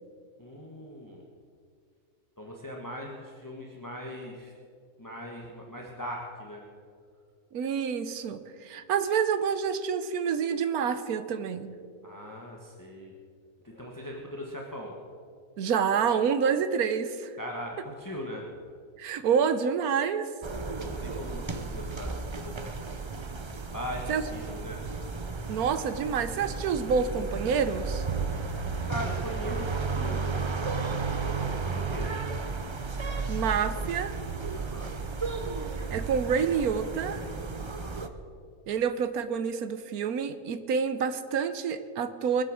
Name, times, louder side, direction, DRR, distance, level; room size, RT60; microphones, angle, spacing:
voice 1, 0.4-1.2 2.4-4.5 5.0-6.6 12.0-13.1 13.6-14.9 17.4-18.4 20.8-23.0 23.7-24.8 28.8-30.4 31.2-32.1 34.5-34.9 37.6-38.0, equal, 15° left, -1 dB, 1.4 m, -40 dB
voice 2, 7.5-11.7 15.6-17.3 19.0-20.3 24.1-24.2 25.5-28.0 33.3-34.2 35.9-37.3 38.7-42.4, right 6 dB, 75° right, 11 dB, 1.3 m, -28 dB
sound 1, 20.4-38.1, right 4 dB, 45° right, 0.3 m, -33 dB
21.5 x 8.1 x 6.4 m, 2.2 s
omnidirectional pair, 1.6 m